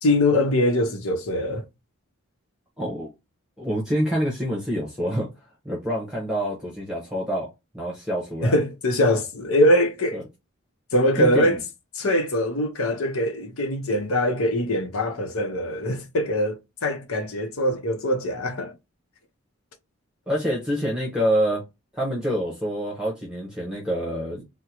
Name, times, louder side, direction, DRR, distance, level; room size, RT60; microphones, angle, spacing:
voice 1, 0.0-1.6 8.4-10.2 10.9-11.6 12.0-18.7, left 1 dB, 85° left, 0.7 m, -22 dB
voice 2, 2.8-3.1 3.6-5.3 5.6-7.5 7.7-8.5 10.1-10.2 11.2-11.6 20.3-21.6 21.9-24.4, equal, 5° right, 0.9 m, -26 dB
3.6 x 2.1 x 2.8 m
head